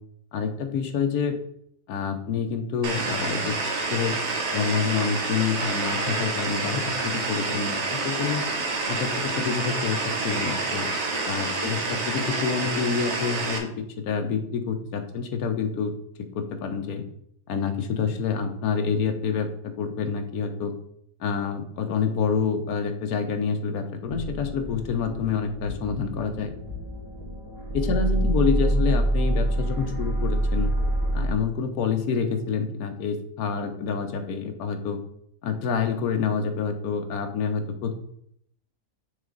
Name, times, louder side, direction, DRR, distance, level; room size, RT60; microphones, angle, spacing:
voice 1, 0.3-1.4 1.9-4.2 4.5-8.4 8.9-10.9 11.2-15.9 16.3-17.0 17.5-20.7 21.2-26.5 27.7-30.7 31.1-35.0 35.4-37.9, left 6 dB, 85° left, 7 dB, 1.3 m, -27 dB
sound 1, 2.8-13.6, right 3 dB, 55° right, 1.1 m, -28 dB
sound 2, 24.0-31.3, right 1 dB, 15° right, 1.2 m, -26 dB
6.3 x 4.1 x 3.8 m, 0.71 s
omnidirectional pair, 1.5 m